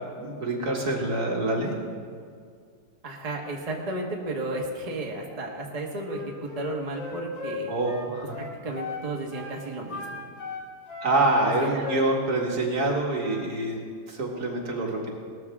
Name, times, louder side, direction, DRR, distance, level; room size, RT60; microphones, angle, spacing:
voice 1, 0.2-1.8 7.7-8.4 11.0-15.1, right 2 dB, 55° right, -1 dB, 2.3 m, -26 dB
voice 2, 3.0-7.7 8.4-10.2 11.4-11.9, right 2 dB, 20° right, -1 dB, 1.3 m, -33 dB
Wind instrument woodwind instrument, 6.1-9.1 9.3-9.6 9.9-12.5 12.8-13.5, left 4 dB, 80° left, 3.3 m, -36 dB
18.5 x 14.0 x 3.6 m, 2.1 s
omnidirectional pair, 2.1 m